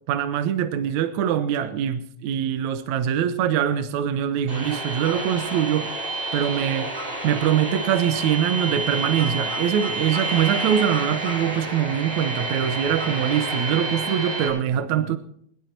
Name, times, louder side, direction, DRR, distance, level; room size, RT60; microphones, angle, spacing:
voice 1, 0.0-5.9 6.3-6.9 7.2-15.2, right 9 dB, 70° right, 10 dB, 1.8 m, -23 dB
sound 1, 4.5-14.5, right 2 dB, 45° right, 6.2 m, -29 dB
23.0 x 11.5 x 4.6 m, 0.65 s
omnidirectional pair, 4.5 m